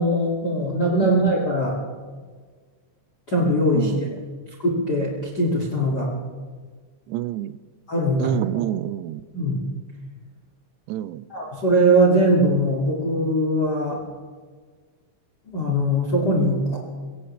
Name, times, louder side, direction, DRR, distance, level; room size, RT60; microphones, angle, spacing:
voice 1, 0.0-1.8 3.3-4.1 4.6-6.1 7.9-8.4 9.3-9.6 11.3-14.0 15.5-16.8, right 1 dB, 40° left, -2 dB, 1.4 m, -21 dB
voice 2, 3.7-4.2 7.1-7.6 8.2-9.2 10.9-11.3, right 13 dB, 85° right, 16 dB, 2.4 m, -28 dB
23.5 x 17.0 x 3.3 m, 1.5 s
omnidirectional pair, 5.2 m